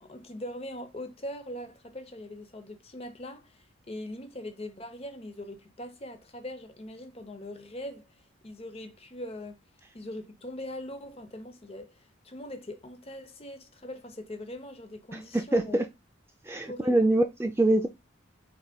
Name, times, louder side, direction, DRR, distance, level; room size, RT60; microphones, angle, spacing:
voice 1, 0.0-8.0 8.4-9.6 9.9-15.8 16.7-16.9, left 1 dB, 30° left, 0.8 m, -41 dB
voice 2, 15.1-15.9 16.4-17.9, right 1 dB, 10° right, 0.3 m, -25 dB
4.6 x 4.0 x 2.2 m
head